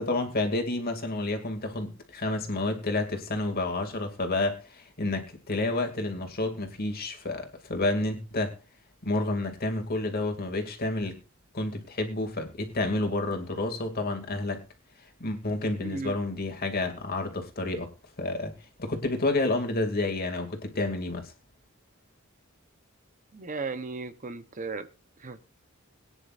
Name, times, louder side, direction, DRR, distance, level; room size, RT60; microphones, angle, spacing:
voice 1, 0.0-8.6 9.0-11.2 11.5-14.6 15.2-17.9 18.2-18.5 18.8-21.3, left 2 dB, 50° left, 2.5 m, -30 dB
voice 2, 15.8-16.2 23.3-24.9 25.2-25.4, right 4 dB, 40° right, 0.9 m, -35 dB
22.0 x 9.8 x 2.5 m
head